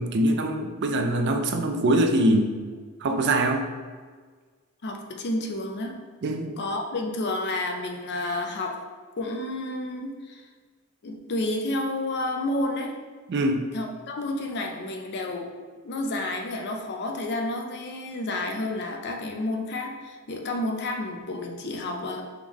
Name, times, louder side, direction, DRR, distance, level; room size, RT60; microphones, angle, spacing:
voice 1, 0.0-2.5 3.0-3.7 6.2-6.5 13.3-13.6, right 1 dB, 50° right, 4 dB, 0.4 m, -23 dB
voice 2, 4.8-5.9 6.6-8.8 9.2-10.4 11.0-13.0 13.5-15.5 15.8-22.2, left 2 dB, 50° left, 2 dB, 0.5 m, -30 dB
3.6 x 3.5 x 3.0 m, 1.5 s
head